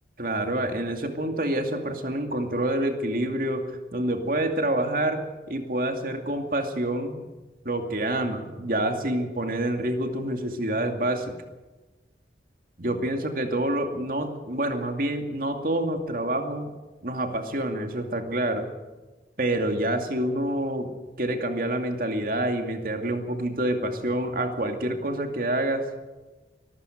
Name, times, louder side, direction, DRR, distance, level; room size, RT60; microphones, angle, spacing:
voice 1, 0.2-3.6 3.9-7.3 7.6-11.3 12.8-16.7 17.0-18.7 19.4-20.9 21.2-25.9, right 1 dB, 50° right, 5 dB, 2.4 m, -27 dB
23.5 x 15.0 x 7.9 m, 1.2 s
head